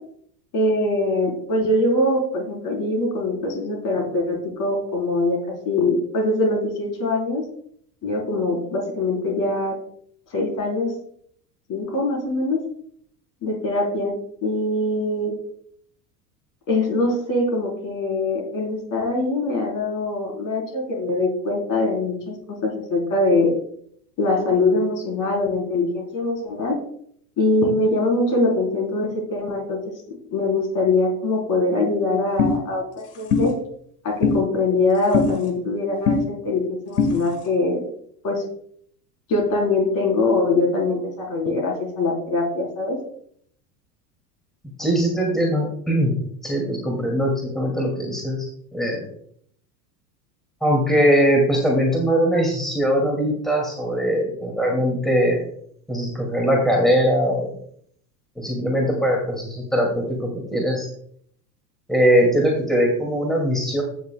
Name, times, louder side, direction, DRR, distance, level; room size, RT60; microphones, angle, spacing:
voice 1, 0.5-5.4 5.6-7.4 8.0-9.8 10.3-10.9 11.7-12.6 13.4-14.1 14.4-15.3 16.7-23.5 24.2-26.8 27.4-29.8 30.1-33.5 34.0-37.8 38.2-38.4 39.3-43.0, left 2 dB, 40° left, 1 dB, 4.1 m, -23 dB
sound 1, 32.4-32.5 33.3-33.5 34.2-34.4 35.1-35.3 36.1-36.2 37.0-37.1, left 5 dB, 70° left, 1.7 m, -18 dB
voice 2, 44.8-46.2 46.4-48.5 48.7-49.0 50.6-55.4 55.9-57.5 58.4-60.9 61.9-63.8, equal, ahead, 0 dB, 2.5 m, -21 dB
16.0 x 6.4 x 2.3 m, 0.64 s
figure-of-eight pair, 80°, 48 cm